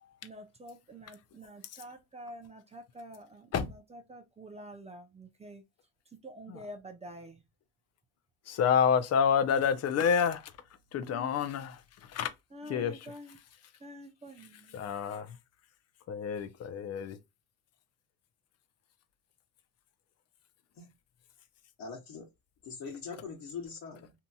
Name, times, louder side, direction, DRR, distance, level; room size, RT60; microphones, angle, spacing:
voice 1, 0.2-5.6 6.2-7.4 11.0-11.4 12.5-13.4 13.8-14.8, equal, 15° right, 0.5 m, -48 dB
voice 2, 8.5-10.4 10.9-11.8 12.1-12.3 12.6-13.1 14.7-15.3 16.1-17.2, left 7 dB, 35° left, 0.5 m, -28 dB
voice 3, 21.8-22.3 22.6-24.1, left 5 dB, 55° left, 1.1 m, -42 dB
2.8 x 2.7 x 2.2 m
supercardioid pair, 95°, 44 cm